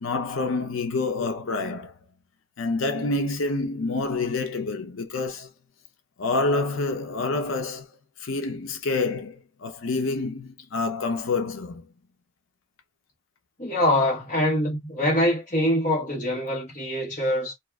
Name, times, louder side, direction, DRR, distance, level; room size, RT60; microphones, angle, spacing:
voice 1, 0.0-1.9 2.6-5.5 6.2-7.9 8.2-11.9, left 3 dB, 80° left, 0.6 m, -27 dB
voice 2, 13.6-17.5, left 1 dB, 40° left, 1.1 m, -24 dB
2.6 x 2.4 x 2.3 m
head